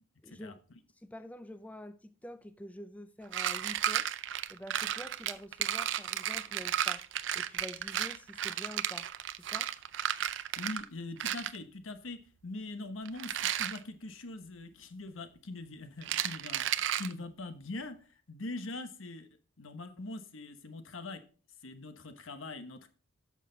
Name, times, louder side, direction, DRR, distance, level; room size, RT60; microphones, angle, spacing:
voice 1, 0.2-0.6 1.0-4.1 4.5-7.0 7.3-9.1 9.4-9.7, left 1 dB, 5° left, 0.4 m, -47 dB
sound 1, 3.3-10.9 11.2-11.6 13.1-13.8 16.0-17.1, right 11 dB, 65° right, 0.5 m, -33 dB
voice 2, 10.6-18.0 18.3-19.3 19.6-21.2 21.6-22.9, left 2 dB, 80° left, 1.1 m, -42 dB
11.0 x 6.5 x 3.9 m
head